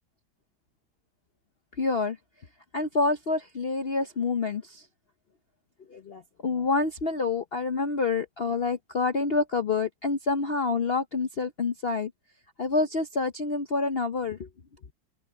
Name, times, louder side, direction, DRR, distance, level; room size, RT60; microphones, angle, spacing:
voice 1, 1.8-2.2 2.7-4.9 5.9-12.1 12.6-14.5, left 3 dB, 55° left, 0.7 m, -27 dB
omnidirectional pair, 2.1 m